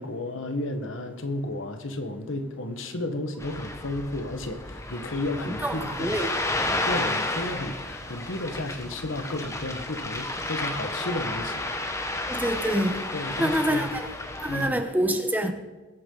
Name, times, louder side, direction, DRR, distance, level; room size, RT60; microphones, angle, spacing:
voice 1, 0.0-6.2 6.9-11.6 13.1-13.8 14.5-14.8, left 1 dB, 80° left, 1.4 m, -32 dB
Ocean, 3.4-14.7, left 2 dB, 15° left, 1.1 m, -32 dB
voice 2, 5.4-6.3 12.3-13.0 13.4-14.1 14.4-15.5, equal, 10° right, 0.9 m, -26 dB
21.0 x 8.4 x 3.9 m
head